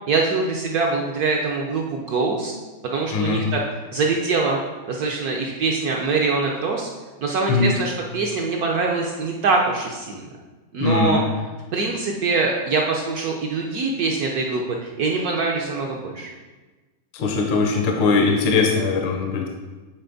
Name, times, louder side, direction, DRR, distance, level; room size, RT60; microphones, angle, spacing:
voice 1, 0.1-2.5 2.9-3.6 3.9-4.6 4.9-6.9 7.2-10.3 10.7-11.2 11.7-16.3, right 4 dB, 70° right, 0 dB, 0.9 m, -23 dB
voice 2, 3.1-3.4 7.5-7.7 10.8-11.2 17.1-19.5, left 4 dB, 75° left, 2 dB, 1.5 m, -20 dB
9.2 x 4.1 x 3.9 m, 1.2 s
omnidirectional pair, 2.3 m